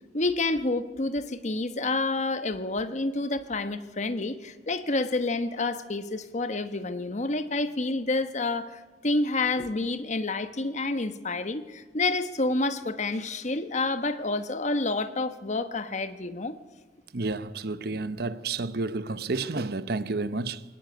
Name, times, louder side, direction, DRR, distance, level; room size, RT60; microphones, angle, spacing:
voice 1, 0.1-16.6, left 2 dB, 45° left, 1.2 m, -29 dB
voice 2, 17.1-20.6, right 3 dB, 60° right, 0.9 m, -30 dB
22.5 x 18.5 x 9.3 m
head